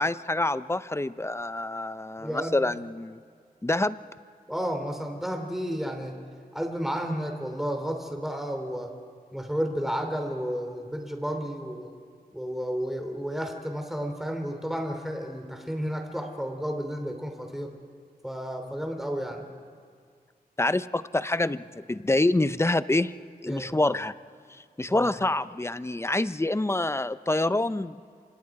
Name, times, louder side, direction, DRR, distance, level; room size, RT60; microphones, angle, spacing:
voice 1, 0.0-3.2 3.6-4.0 20.6-23.1 23.4-24.1 24.8-28.0, left 2 dB, 15° left, 14 dB, 0.6 m, -26 dB
voice 2, 2.2-2.6 4.5-6.2 6.5-8.9 9.3-11.9 12.3-17.8 18.2-19.5 23.5-23.7 24.9-25.1, equal, ahead, 4 dB, 3.0 m, -32 dB
29.0 x 26.0 x 4.8 m, 2.1 s
wide cardioid pair, 70°, 16 cm